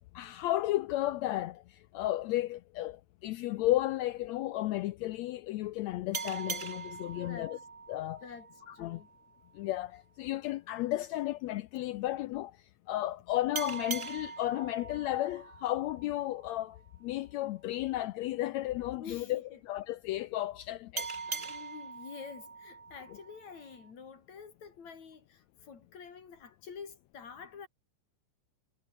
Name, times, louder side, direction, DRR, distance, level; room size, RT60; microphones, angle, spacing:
voice 1, 0.1-7.6 7.9-8.2 8.7-9.0 9.5-12.6 12.9-21.4, left 15 dB, 80° left, 1.6 m, -33 dB
sound 1, 6.1-9.4 13.5-16.8 21.0-23.9, right 5 dB, 30° right, 1.9 m, -42 dB
voice 2, 7.1-7.5 8.2-9.1 19.0-19.6 21.3-27.7, left 6 dB, 60° left, 4.6 m, -48 dB
omnidirectional pair, 3.6 m